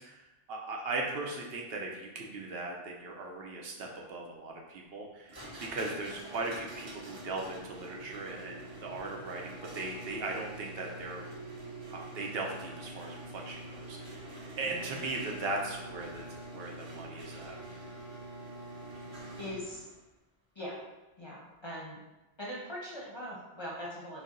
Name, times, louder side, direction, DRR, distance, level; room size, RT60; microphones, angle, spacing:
voice 1, 0.0-5.4 5.7-11.2 11.9-17.5, right 2 dB, 75° right, 0 dB, 0.8 m, -38 dB
sound 1, 5.3-20.0, right 1 dB, 35° right, 1.0 m, -45 dB
voice 2, 14.7-15.0 19.4-19.8 20.6-20.8 21.2-22.0 22.4-24.2, equal, 30° left, -5 dB, 0.6 m, -41 dB
4.1 x 2.0 x 3.7 m, 1.0 s
omnidirectional pair, 1.1 m